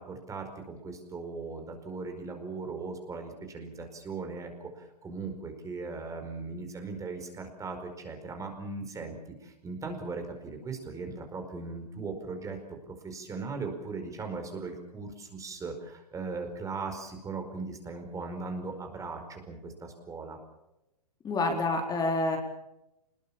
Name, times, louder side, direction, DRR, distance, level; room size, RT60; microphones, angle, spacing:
voice 1, 0.0-12.6 12.9-20.4, right 4 dB, 15° right, 5 dB, 4.9 m, -38 dB
voice 2, 21.2-22.4, left 2 dB, 20° left, 3 dB, 4.3 m, -27 dB
25.5 x 21.0 x 7.2 m, 0.89 s
hypercardioid pair, 120°, 21 cm